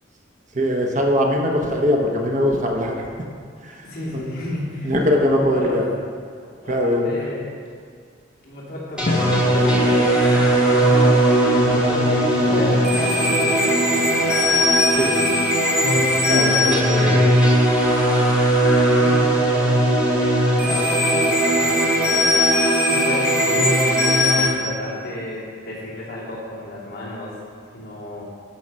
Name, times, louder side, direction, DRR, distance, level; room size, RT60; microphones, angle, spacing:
voice 1, 0.5-3.0 3.6-3.9 4.8-5.8 6.7-7.1 14.9-15.2 16.3-17.3, left 1 dB, 40° right, 0 dB, 1.0 m, -21 dB
voice 2, 3.8-5.8 6.6-7.4 8.4-14.5 16.1-16.8 18.7-22.3 22.9-27.4 27.7-28.2, left 1 dB, 55° left, -7 dB, 2.7 m, -32 dB
sound 1, 9.0-24.5, equal, 5° right, 2.5 m, -18 dB
Drum, 9.1-18.3, left 3 dB, 35° left, 0.4 m, -28 dB
12.5 x 4.7 x 5.4 m, 2.1 s
head